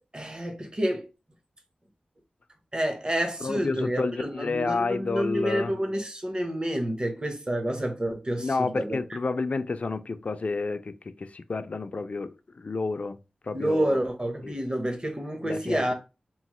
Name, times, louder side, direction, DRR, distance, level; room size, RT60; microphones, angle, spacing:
voice 1, 0.1-1.1 2.7-9.0 13.5-15.9, right 1 dB, 35° right, 0.8 m, -29 dB
voice 2, 3.4-5.7 8.4-13.2 13.4-14.0 14.4-14.6 15.4-15.9, left 3 dB, 55° left, 0.3 m, -30 dB
3.0 x 2.1 x 3.0 m
cardioid pair, 45°, 3 cm